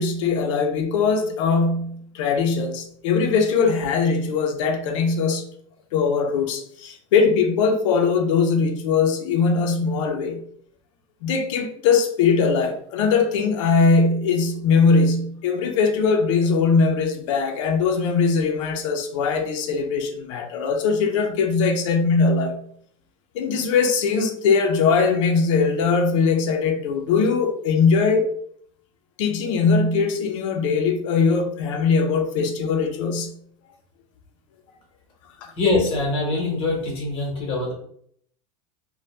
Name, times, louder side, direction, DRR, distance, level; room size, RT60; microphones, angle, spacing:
voice 1, 0.0-5.5 5.9-10.4 11.2-22.6 23.3-28.3 29.2-33.3, left 5 dB, 70° left, 0.6 m, -21 dB
voice 2, 35.6-37.7, left 2 dB, 30° left, 1.1 m, -23 dB
2.8 x 2.2 x 3.1 m
supercardioid pair, 155°, 17 cm